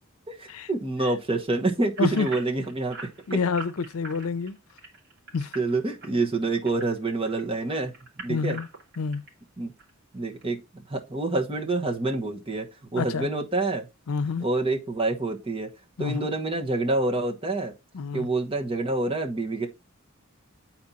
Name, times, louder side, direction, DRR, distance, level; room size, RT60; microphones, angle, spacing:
voice 1, 0.3-3.4 5.5-7.9 8.2-8.6 9.6-9.7 10.1-10.6 10.9-13.9 14.4-15.7 16.0-17.7 18.1-19.7, right 2 dB, 25° right, 1.2 m, -27 dB
sound 1, 2.0-7.4 7.9-9.3 9.8-9.9 10.4-10.5, right 3 dB, 50° right, 2.6 m, -42 dB
voice 2, 3.3-4.6 5.3-5.5 8.3-8.7 9.0-9.2 13.0-13.3 14.1-14.5 16.0-16.3 17.9-18.3, left 4 dB, 90° left, 0.6 m, -28 dB
8.6 x 4.4 x 4.1 m
head